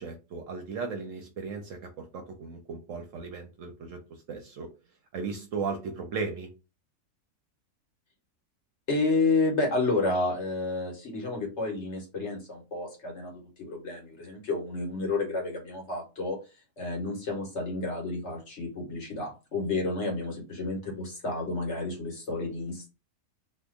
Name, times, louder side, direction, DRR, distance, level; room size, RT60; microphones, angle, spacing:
voice 1, 0.0-4.7 5.1-6.5, right 4 dB, 65° right, 4 dB, 0.8 m, -36 dB
voice 2, 8.9-16.4 16.8-22.9, left 3 dB, 50° left, 1 dB, 1.2 m, -30 dB
2.8 x 2.3 x 3.5 m, 0.30 s
omnidirectional pair, 1.7 m